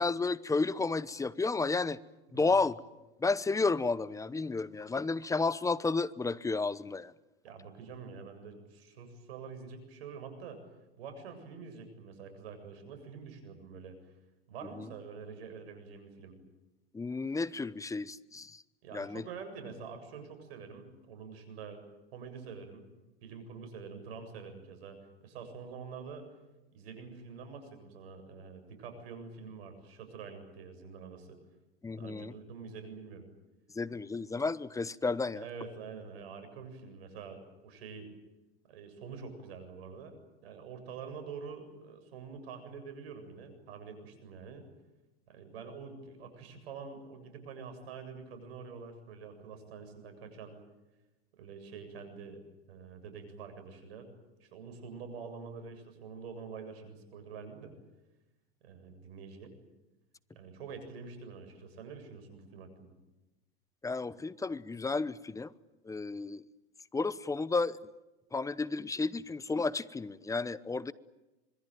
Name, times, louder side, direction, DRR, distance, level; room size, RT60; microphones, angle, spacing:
voice 1, 0.0-2.0 2.3-2.8 3.2-7.1 14.8-14.9 16.9-18.6 18.9-19.2 31.8-32.3 33.7-35.5 63.8-65.5 65.8-66.4 66.9-67.8 68.3-70.9, left 3 dB, 10° left, 19 dB, 0.8 m, -32 dB
voice 2, 7.4-10.6 11.0-14.0 14.5-16.4 18.8-21.8 22.1-22.8 23.2-26.3 26.7-31.4 32.0-33.3 35.3-38.1 38.7-40.1 40.4-44.7 45.3-50.6 51.4-52.4 52.7-54.1 54.4-57.7 58.6-59.6 60.3-62.9, right 5 dB, 75° right, 8 dB, 7.6 m, -46 dB
26.5 x 22.5 x 9.2 m, 1.0 s
hypercardioid pair, 110°, 31 cm